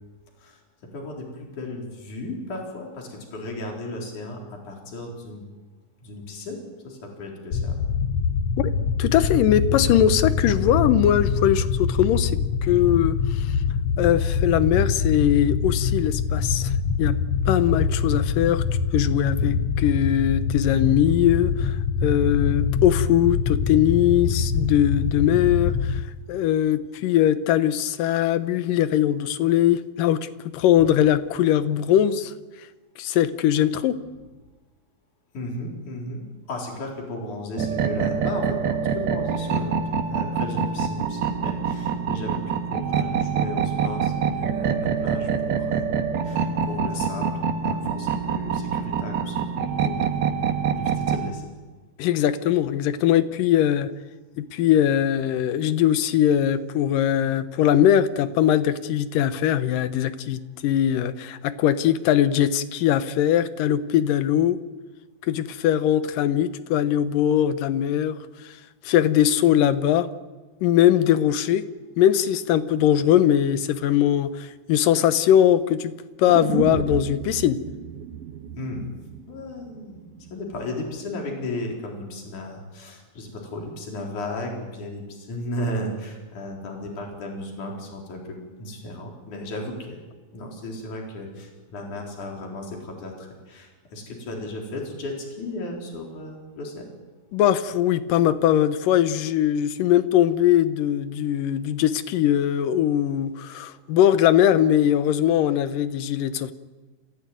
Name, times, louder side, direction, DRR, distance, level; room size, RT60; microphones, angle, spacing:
voice 1, 0.9-5.4 6.0-7.8 19.4-19.6 35.3-39.8 40.1-45.9 46.2-49.5 49.8-50.3 50.8-51.5 78.6-78.8 79.3-90.0 90.3-96.9, left 1 dB, 55° left, 0 dB, 5.5 m, -35 dB
sound 1, 7.5-26.0, left 6 dB, 90° left, 1.4 m, -24 dB
voice 2, 9.0-13.6 14.0-16.7 17.0-17.1 17.5-18.6 18.9-26.0 26.3-30.3 30.5-32.3 33.0-34.0 52.0-53.9 54.4-64.6 65.2-68.6 68.8-70.1 70.6-71.6 72.0-75.9 76.2-77.6 97.3-106.5, left 11 dB, 70° left, 12 dB, 2.4 m, -21 dB
sound 2, 37.6-51.3, right 6 dB, 85° right, 3.5 m, -25 dB
sound 3, 76.3-80.3 80.6-80.7, right 9 dB, 70° right, 2.5 m, -33 dB
28.0 x 16.0 x 9.3 m, 1.3 s
omnidirectional pair, 4.3 m